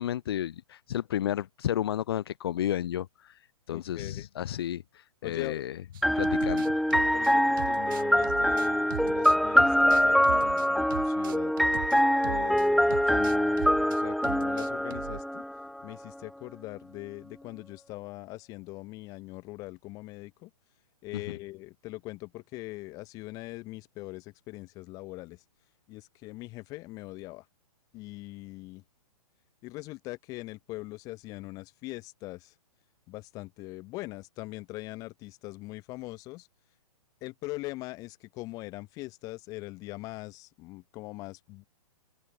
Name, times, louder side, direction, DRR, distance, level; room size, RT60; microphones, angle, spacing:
voice 1, 0.0-5.8 6.2-6.8 21.3-21.4, left 11 dB, 40° left, 2.0 m, -32 dB
voice 2, 3.7-4.3 5.2-5.7 6.0-6.6 7.1-11.5 12.2-15.4 15.8-20.5 21.0-25.4 25.9-27.5 27.9-28.8 29.6-32.5 33.1-36.5 37.2-41.7, left 21 dB, 20° left, 7.6 m, -42 dB
sound 1, 5.9-12.7 12.9-14.0 14.2-15.2, right 13 dB, 35° right, 6.5 m, -40 dB
sound 2, 6.0-15.8, equal, ahead, 1.2 m, -24 dB
open air
hypercardioid pair, 175°, 19 cm